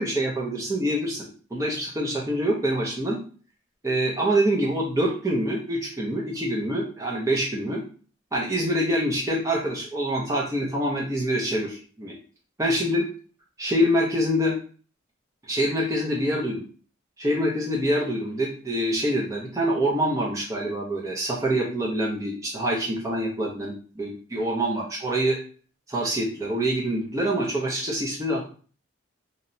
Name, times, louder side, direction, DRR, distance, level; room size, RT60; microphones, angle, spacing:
voice 1, 0.0-3.2 3.8-7.8 8.3-12.1 12.6-13.0 13.6-14.6 15.5-16.6 17.2-25.4 25.9-28.4, equal, 15° right, -3 dB, 0.4 m, -25 dB
2.8 x 2.1 x 2.6 m, 0.41 s
head